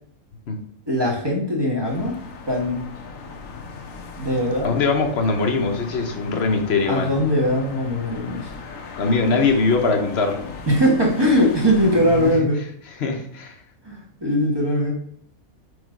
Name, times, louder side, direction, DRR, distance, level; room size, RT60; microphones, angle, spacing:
voice 1, 0.9-2.1 2.4-2.8 4.2-4.7 6.9-8.5 10.7-12.6 13.8-14.9, equal, 15° right, -2 dB, 1.5 m, -20 dB
sound 1, 1.8-12.4, left 4 dB, 70° left, 1.2 m, -37 dB
voice 2, 4.6-7.1 9.0-10.4 12.2-12.5 12.9-13.6, left 4 dB, 50° left, 4 dB, 1.2 m, -22 dB
4.8 x 4.6 x 5.1 m, 0.66 s
omnidirectional pair, 1.5 m